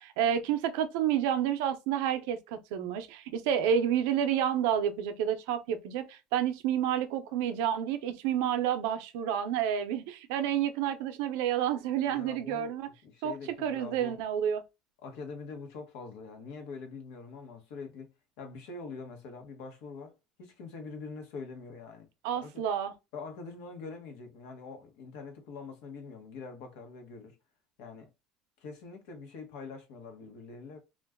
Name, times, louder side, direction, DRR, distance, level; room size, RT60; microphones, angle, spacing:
voice 1, 0.0-12.9 13.2-14.6 22.2-22.9, right 9 dB, 75° right, 0.5 m, -29 dB
voice 2, 12.1-14.2 15.0-22.1 22.3-22.7 23.1-27.4 27.8-28.1 28.6-30.8, left 4 dB, 70° left, 0.9 m, -44 dB
2.5 x 2.2 x 3.4 m
cardioid pair, 180°, 0 cm